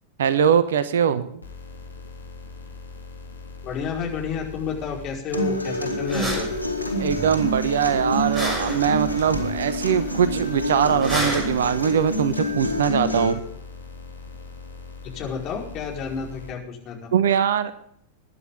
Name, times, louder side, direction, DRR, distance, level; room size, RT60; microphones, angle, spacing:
voice 1, 0.2-1.3 7.0-13.4 17.1-17.7, right 8 dB, 60° right, 14 dB, 1.1 m, -22 dB
sound 1, 1.4-16.5, left 3 dB, 80° left, 2.4 m, -41 dB
voice 2, 3.6-6.5 15.1-17.1, left 6 dB, 35° left, 0 dB, 5.0 m, -31 dB
Acoustic guitar, 5.3-13.3, equal, 85° right, 3.0 m, -27 dB
sound 2, 6.1-12.8, right 1 dB, 20° right, 6.1 m, -33 dB
22.0 x 11.0 x 3.8 m, 0.66 s
figure-of-eight pair, 90°, 0 cm